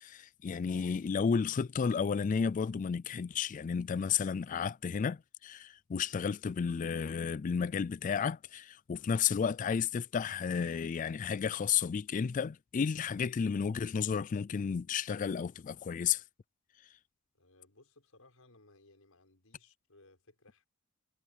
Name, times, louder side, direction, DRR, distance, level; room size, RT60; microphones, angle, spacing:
voice 1, 0.0-16.2, left 6 dB, 40° left, 0.3 m, -32 dB
voice 2, 17.3-20.7, left 2 dB, 90° left, 6.1 m, -62 dB
head